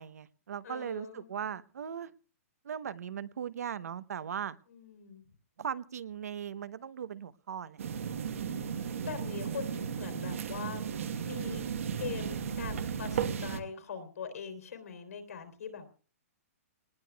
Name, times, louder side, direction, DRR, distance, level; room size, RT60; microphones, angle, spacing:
voice 1, 0.0-2.1 2.6-4.6 5.6-7.8, right 8 dB, 85° right, 15 dB, 0.9 m, -38 dB
voice 2, 0.6-1.3 4.7-5.2 8.3-8.8 9.0-10.9 11.2-11.6 12.0-15.9, left 6 dB, 75° left, 7 dB, 3.4 m, -42 dB
sound 1, 7.8-13.6, right 7 dB, 60° right, 1.3 m, -35 dB
28.0 x 19.5 x 2.3 m, 0.38 s
hypercardioid pair, 180°, 8 cm